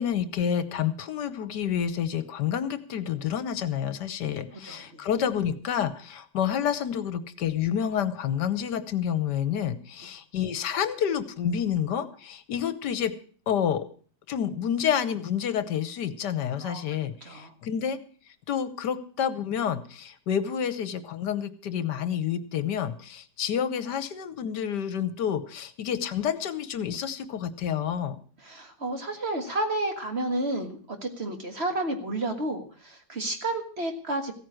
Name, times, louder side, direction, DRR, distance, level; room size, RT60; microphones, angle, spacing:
voice 1, 0.0-13.1 13.5-13.9 14.3-18.0 18.3-28.2, left 8 dB, 70° left, 13 dB, 1.5 m, -29 dB
voice 2, 4.6-5.0 16.6-16.8 17.2-17.5 28.4-34.3, right 2 dB, 35° right, 5 dB, 1.9 m, -31 dB
15.5 x 9.3 x 6.3 m, 0.44 s
omnidirectional pair, 1.9 m